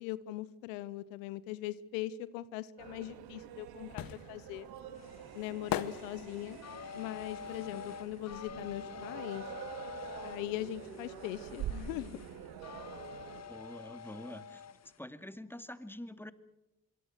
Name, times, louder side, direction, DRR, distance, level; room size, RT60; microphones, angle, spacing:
voice 1, 0.0-4.7 5.3-6.6 6.9-9.5 10.2-12.2, left 14 dB, 85° left, 18 dB, 0.8 m, -40 dB
sound 1, 2.8-13.4, right 9 dB, 75° right, 2.0 m, -46 dB
sound 2, 3.1-8.9 9.2-10.8 11.1-11.2, left 11 dB, 65° left, 1.2 m, -42 dB
sound 3, 4.9-15.0, left 7 dB, 45° left, 1.2 m, -48 dB
voice 2, 13.5-14.6 15.0-16.3, left 1 dB, 5° left, 11 dB, 2.3 m, -46 dB
25.5 x 23.0 x 6.5 m, 0.90 s
hypercardioid pair, 45°, 38 cm